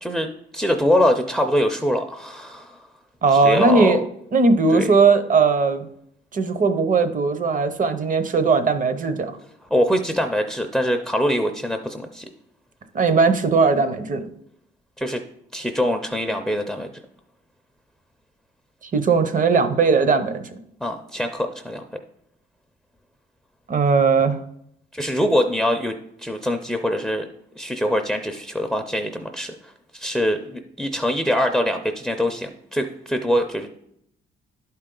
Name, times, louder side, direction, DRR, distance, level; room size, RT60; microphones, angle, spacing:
voice 1, 0.0-2.7 3.3-4.0 4.7-4.9 9.7-12.3 15.0-15.2 15.5-16.9 20.8-21.8 24.9-27.3 27.6-29.5 29.9-33.7, equal, ahead, 6 dB, 0.5 m, -23 dB
voice 2, 3.2-4.0 4.3-5.9 6.3-9.3 12.9-14.2 18.9-20.4 23.7-24.4, right 4 dB, 40° right, 10 dB, 0.8 m, -18 dB
10.5 x 4.4 x 3.8 m, 0.73 s
cardioid pair, 90°, 20 cm